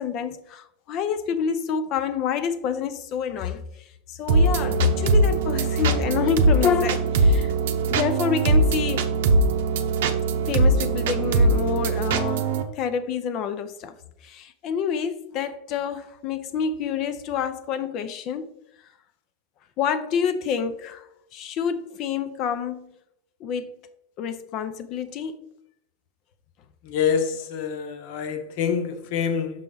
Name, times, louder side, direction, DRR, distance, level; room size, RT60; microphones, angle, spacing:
voice 1, 0.0-3.6 4.1-7.5 7.9-9.1 10.4-13.9 14.2-18.5 19.8-22.9 23.4-23.8 24.2-25.5, left 7 dB, 45° left, 0.6 m, -27 dB
sound 1, 4.3-12.6, right 3 dB, 75° right, 0.8 m, -21 dB
voice 2, 26.9-29.6, left 7 dB, 60° left, 1.0 m, -26 dB
5.8 x 5.7 x 3.9 m
supercardioid pair, 135°, 0 cm